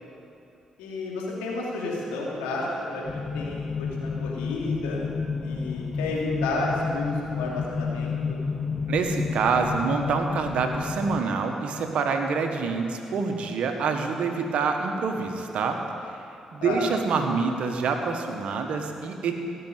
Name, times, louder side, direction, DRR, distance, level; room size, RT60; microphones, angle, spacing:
voice 1, 0.8-5.0 5.4-8.4 16.6-16.8, left 2 dB, 85° left, -4 dB, 2.6 m, -31 dB
sound 1, 3.0-11.2, left 5 dB, 40° left, 0.8 m, -30 dB
voice 2, 8.9-15.8 16.5-19.4, right 5 dB, 70° right, 4 dB, 1.4 m, -26 dB
16.5 x 6.9 x 9.0 m, 2.9 s
hypercardioid pair, 45°, 2 cm